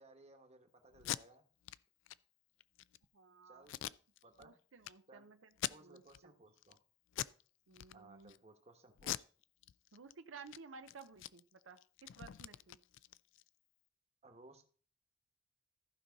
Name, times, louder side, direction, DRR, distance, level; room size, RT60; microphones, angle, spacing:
voice 1, 0.0-1.4 3.4-3.8 4.2-4.5 5.1-5.3 5.7-6.8 7.9-9.2 14.2-14.6, right 2 dB, 35° right, 5 dB, 1.2 m, -60 dB
Packing tape duct tape, 0.9-1.2 1.6-1.8 2.1-2.2 2.6-3.0 3.7-4.5 4.8-4.9 5.5-6.2 6.6-6.8 7.1-7.4 7.7-8.4 9.0-10.1 10.4-10.6 10.9-13.5, left 12 dB, 75° left, 0.3 m, -43 dB
voice 2, 3.1-3.9 4.4-6.3 7.7-8.3 9.9-12.8, right 5 dB, 90° right, 9 dB, 0.6 m, -56 dB
14.5 x 5.4 x 4.0 m, 0.42 s
head